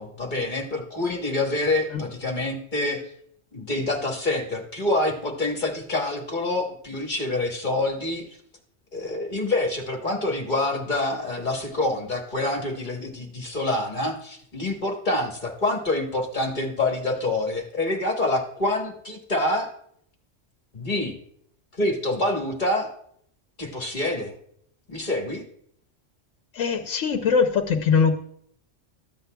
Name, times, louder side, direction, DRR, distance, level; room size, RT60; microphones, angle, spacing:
voice 1, 0.0-3.0 3.5-8.2 8.9-19.7 20.7-21.1 21.7-22.9 23.6-24.3 24.9-25.4, left 2 dB, 40° left, 1 dB, 1.3 m, -26 dB
voice 2, 26.5-28.1, left 6 dB, 85° left, 3 dB, 1.1 m, -21 dB
14.0 x 8.1 x 2.2 m, 0.67 s
omnidirectional pair, 1.3 m